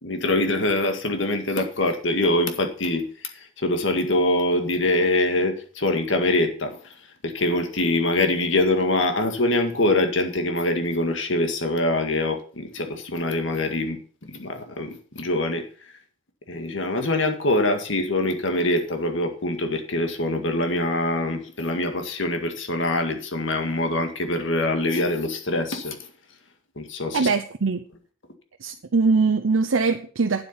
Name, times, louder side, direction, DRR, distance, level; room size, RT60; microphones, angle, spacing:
voice 1, 0.0-3.1 3.3-6.8 7.2-14.0 14.3-15.6 16.5-26.0 26.8-27.3, left 2 dB, 70° left, 5 dB, 1.9 m, -24 dB
voice 2, 27.1-27.8 28.6-30.5, right 4 dB, 85° right, 6 dB, 0.7 m, -22 dB
9.1 x 7.9 x 5.6 m, 0.42 s
head